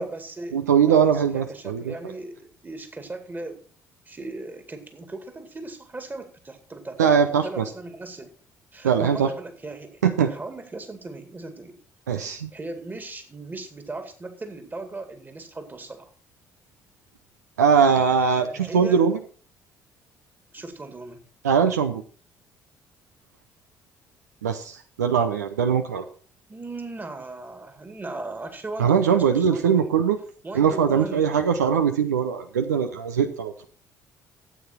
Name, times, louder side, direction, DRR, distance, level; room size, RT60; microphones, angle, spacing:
voice 1, 0.0-0.6 0.9-3.6 4.1-8.3 8.7-11.8 12.2-16.1 18.5-19.0 20.5-21.2 26.5-29.9 30.4-31.3, right 2 dB, 20° right, 8 dB, 2.2 m, -37 dB
voice 2, 0.5-1.9 7.0-7.6 8.8-9.3 10.0-10.3 12.1-12.5 17.6-19.2 21.4-22.0 24.4-26.0 28.8-30.2 30.5-33.6, right 7 dB, 80° right, 8 dB, 0.6 m, -21 dB
13.0 x 8.4 x 4.3 m, 0.41 s
figure-of-eight pair, 50°, 9 cm